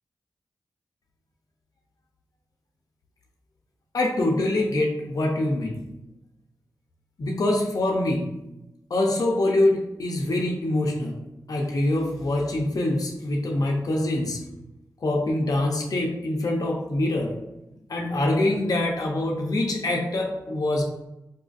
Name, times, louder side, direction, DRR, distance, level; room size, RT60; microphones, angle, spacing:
voice 1, 3.9-5.8 7.2-8.3 8.9-11.2 11.5-14.4 15.0-17.4 17.9-20.8, left 1 dB, 55° left, -1 dB, 0.6 m, -24 dB
4.1 x 2.4 x 2.4 m, 0.92 s
cardioid pair, 45°, 7 cm